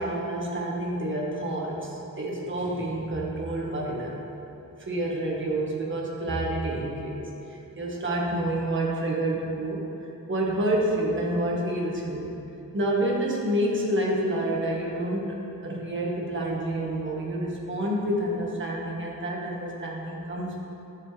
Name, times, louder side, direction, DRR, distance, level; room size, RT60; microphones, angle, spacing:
voice 1, 0.0-4.2 4.8-12.3 12.7-20.6, right 1 dB, 35° right, -3 dB, 1.6 m, -28 dB
12.5 x 7.3 x 3.4 m, 2.9 s
wide cardioid pair, 140°, 32 cm